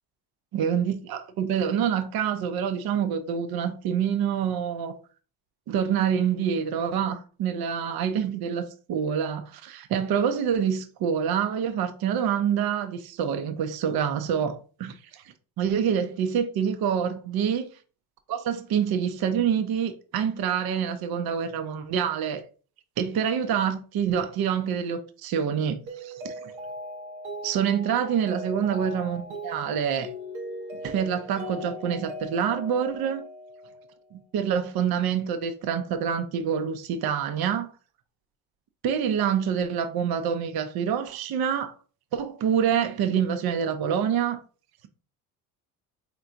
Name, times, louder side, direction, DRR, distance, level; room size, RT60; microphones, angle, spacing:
voice 1, 0.5-4.9 5.7-14.9 15.6-17.7 18.3-22.4 23.0-26.1 27.4-30.1 30.8-33.3 34.1-37.7 38.8-41.7 42.1-44.4, right 8 dB, 55° right, 0.8 m, -26 dB
Mallet percussion, 25.9-34.0, equal, 90° right, 1.0 m, -39 dB
4.5 x 3.4 x 2.6 m
supercardioid pair, 75°, 43 cm